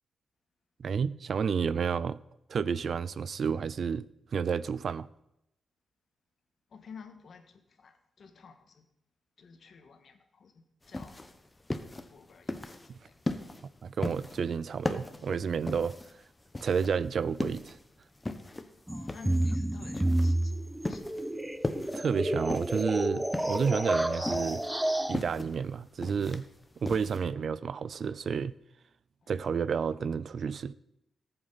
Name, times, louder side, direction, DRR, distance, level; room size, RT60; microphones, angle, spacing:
voice 1, 0.8-2.2 2.5-5.1 12.9-13.0 13.8-16.0 16.6-17.8 21.9-24.6 25.1-26.5 26.8-28.5 29.3-30.7, right 6 dB, 60° right, 0.4 m, -31 dB
voice 2, 6.7-8.8 9.4-11.2 11.8-13.1 18.9-20.6 20.9-21.0 29.2-29.3, left 5 dB, 60° left, 1.6 m, -52 dB
sound 1, 10.8-27.2, left 2 dB, 20° left, 1.0 m, -38 dB
sound 2, 18.9-25.2, right 1 dB, 5° right, 0.7 m, -30 dB
18.5 x 7.8 x 4.1 m
cardioid pair, 85°, 0 cm